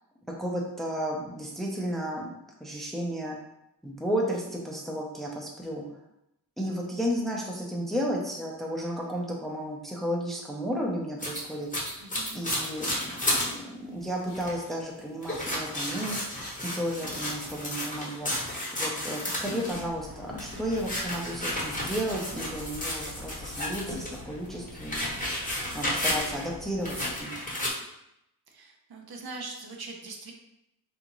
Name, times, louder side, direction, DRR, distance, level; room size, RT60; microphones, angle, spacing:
voice 1, 0.4-2.3 2.6-3.4 3.8-5.8 6.6-12.0 12.3-16.2 16.6-18.3 18.8-25.1 25.7-27.4, equal, ahead, -2 dB, 0.5 m, -33 dB
sound 1, 11.2-13.5 13.9-14.0 14.3-14.7 15.2-19.9 20.3-24.2 24.5-26.5 26.8-27.7, left 1 dB, 20° left, 0.9 m, -32 dB
voice 2, 12.0-12.4 28.5-30.3, right 3 dB, 65° right, 1 dB, 0.7 m, -42 dB
sound 2, 19.7-27.2, left 2 dB, 60° left, 0.6 m, -46 dB
3.6 x 2.5 x 2.9 m, 0.84 s
wide cardioid pair, 105°, 39 cm